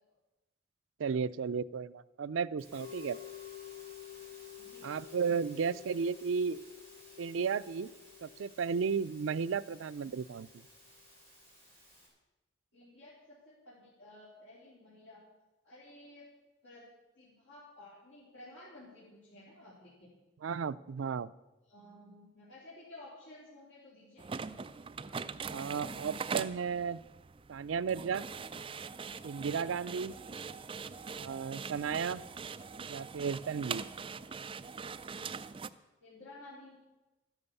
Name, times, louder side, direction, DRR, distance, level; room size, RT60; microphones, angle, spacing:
voice 1, 1.0-3.2 4.8-6.6 7.2-7.9 8.2-10.6 20.4-21.3 25.5-27.0 27.5-28.2 29.2-30.1 31.2-32.2 32.9-33.8, right 6 dB, 90° right, 17 dB, 0.4 m, -34 dB
Musical instrument, 2.6-12.1, left 8 dB, 10° left, 4.5 m, -51 dB
voice 2, 4.6-5.0 9.6-9.7 12.7-15.2 15.6-16.3 16.6-16.9 17.2-20.2 21.7-24.3 36.0-36.8, left 1 dB, 70° left, -8 dB, 3.6 m, -54 dB
sound 1, 24.2-35.7, right 5 dB, 25° right, 0.4 m, -42 dB
13.0 x 10.5 x 7.0 m, 1.1 s
head